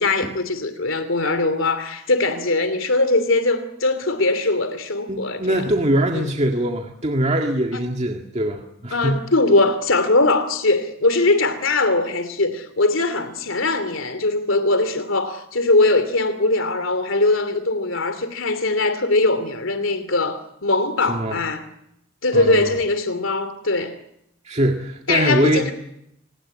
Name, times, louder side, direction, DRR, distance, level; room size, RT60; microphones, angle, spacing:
voice 1, 0.0-5.6 6.1-6.3 7.7-7.8 8.9-21.6 22.2-24.0 25.1-25.7, left 2 dB, 70° left, 2.9 m, -21 dB
voice 2, 5.1-9.2 21.1-21.4 22.3-22.7 24.5-25.7, right 1 dB, 30° right, 1.9 m, -22 dB
26.5 x 20.0 x 9.8 m
head